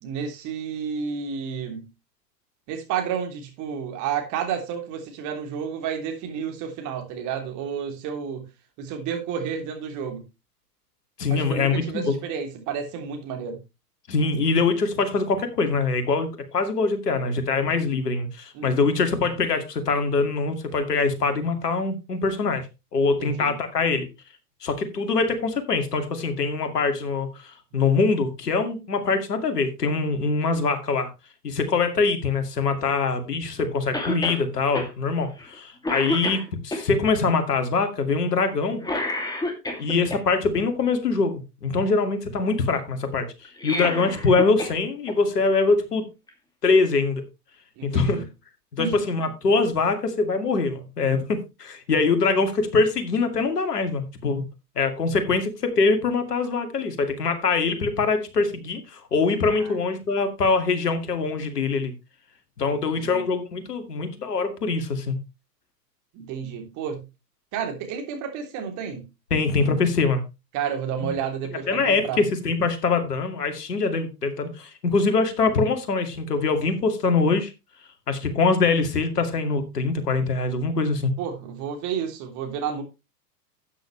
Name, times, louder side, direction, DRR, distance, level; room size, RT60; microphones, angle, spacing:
voice 1, 0.0-1.9 2.7-8.5 8.8-10.3 11.3-13.6 18.5-18.8 23.2-23.6 47.8-48.2 48.8-49.0 59.6-59.8 62.9-63.3 66.1-67.1 67.5-69.1 70.5-72.2 81.2-82.8, right 7 dB, 35° right, 3.3 m, -31 dB
voice 2, 11.2-12.1 14.1-22.7 22.9-24.1 24.6-31.1 31.4-38.8 39.8-46.1 46.6-47.2 47.8-48.2 48.8-54.4 54.8-61.9 62.6-65.2 69.3-70.2 71.0-71.1 71.7-77.5 78.1-81.1, left 4 dB, 70° left, 2.4 m, -23 dB
Cough, 33.9-34.4 34.7-34.9 35.4-35.6 35.8-36.8 38.8-40.2 43.4-44.8 45.1-45.2 46.3-46.4, left 1 dB, 10° left, 2.5 m, -29 dB
12.5 x 8.9 x 3.3 m
figure-of-eight pair, 100°, 49 cm